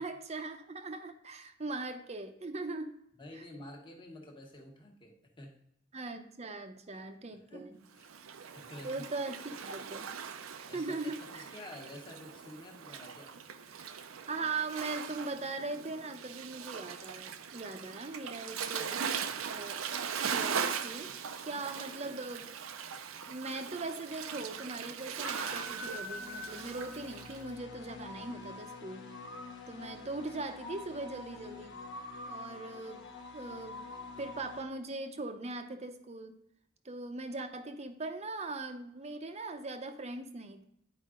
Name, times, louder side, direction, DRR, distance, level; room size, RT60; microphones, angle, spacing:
voice 1, 0.0-3.0 3.3-3.4 5.9-7.8 8.8-10.1 10.6-11.4 14.3-19.1 19.5-19.8 20.2-21.1 21.4-22.5 23.3-29.1 29.7-31.8 32.2-33.1 33.3-33.8 34.2-36.3 36.8-40.6, right 3 dB, 35° right, 7 dB, 0.7 m, -40 dB
voice 2, 3.2-5.6 6.9-8.1 8.5-9.0 10.7-13.4, left 1 dB, 25° left, 0 dB, 1.3 m, -50 dB
Waves surf, 8.0-27.4, right 7 dB, 90° right, 0.6 m, -40 dB
sound 1, 25.2-34.6, left 3 dB, 65° left, 1.2 m, -45 dB
10.0 x 4.8 x 3.7 m, 0.77 s
head